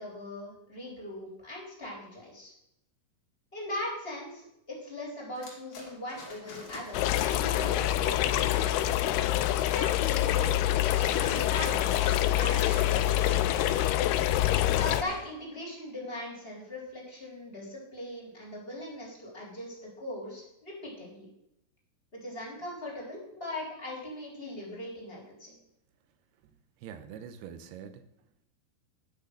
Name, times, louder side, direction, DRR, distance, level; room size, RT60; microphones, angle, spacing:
voice 1, 0.0-2.5 3.5-9.1 9.7-10.8 11.0-13.6 14.7-21.3 22.1-25.5, left 1 dB, 15° left, -3 dB, 3.3 m, -40 dB
sound 1, 5.4-9.9 10.2-15.3, left 3 dB, 50° left, 3.4 m, -46 dB
sound 2, 6.9-15.0, left 13 dB, 85° left, 2.4 m, -26 dB
voice 2, 26.8-28.1, right 8 dB, 80° right, 10 dB, 2.7 m, -45 dB
11.0 x 6.6 x 6.6 m, 0.81 s
omnidirectional pair, 4.8 m